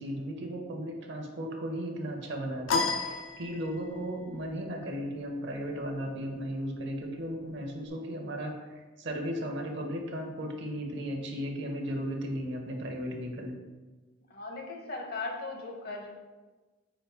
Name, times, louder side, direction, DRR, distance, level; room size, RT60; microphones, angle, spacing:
voice 1, 0.0-8.6 9.0-13.5, equal, 65° right, 3 dB, 0.7 m, -35 dB
sound 1, 2.7-4.1, left 4 dB, 80° left, 0.5 m, -31 dB
voice 2, 14.3-16.1, left 3 dB, 55° left, 0 dB, 0.8 m, -38 dB
4.0 x 3.7 x 3.4 m, 1.3 s
head